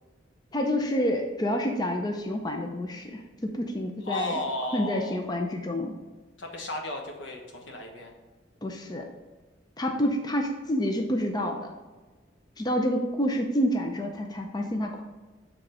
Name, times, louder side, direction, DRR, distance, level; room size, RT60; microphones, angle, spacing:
voice 1, 0.5-4.3 4.7-5.9 8.6-9.1 9.8-11.7 12.6-15.0, equal, 20° left, 3 dB, 0.5 m, -28 dB
voice 2, 4.0-5.2 6.4-8.1, left 1 dB, 75° left, 2 dB, 1.1 m, -34 dB
6.7 x 3.7 x 4.9 m, 1.3 s
head